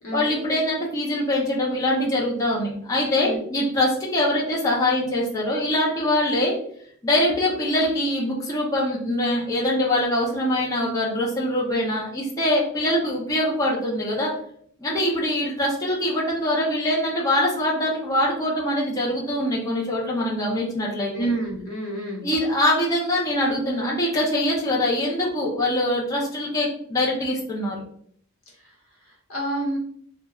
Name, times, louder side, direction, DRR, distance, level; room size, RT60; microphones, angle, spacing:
voice 1, 0.1-6.5 7.0-14.3 14.8-21.3 22.2-27.8, left 1 dB, 15° left, -5 dB, 0.5 m, -23 dB
voice 2, 21.1-22.3 28.5-29.8, right 1 dB, 80° left, -2 dB, 0.9 m, -29 dB
3.0 x 2.2 x 2.3 m, 0.63 s
head